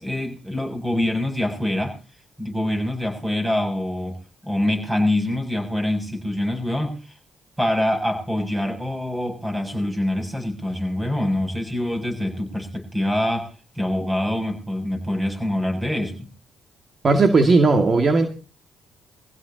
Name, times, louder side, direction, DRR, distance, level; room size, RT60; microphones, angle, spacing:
voice 1, 0.0-1.9 2.4-7.1 7.6-13.5 13.8-16.3, left 1 dB, 15° right, 4 dB, 7.2 m, -25 dB
voice 2, 17.0-18.3, right 3 dB, 45° right, 6 dB, 2.1 m, -16 dB
24.0 x 16.0 x 2.8 m, 0.34 s
supercardioid pair, 55°, 0 cm